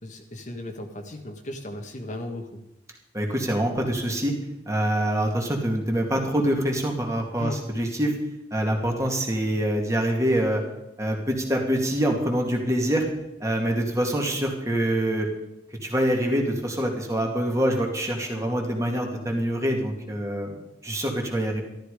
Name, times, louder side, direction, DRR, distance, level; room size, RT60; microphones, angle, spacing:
voice 1, 0.0-2.5 7.4-7.6, left 1 dB, 45° left, 3 dB, 1.6 m, -36 dB
voice 2, 3.1-4.3 4.7-8.1 8.5-10.6 11.0-13.1 13.4-15.3 15.8-20.5 20.8-21.6, right 1 dB, 15° right, 1 dB, 2.4 m, -25 dB
13.5 x 13.0 x 5.0 m, 0.92 s
head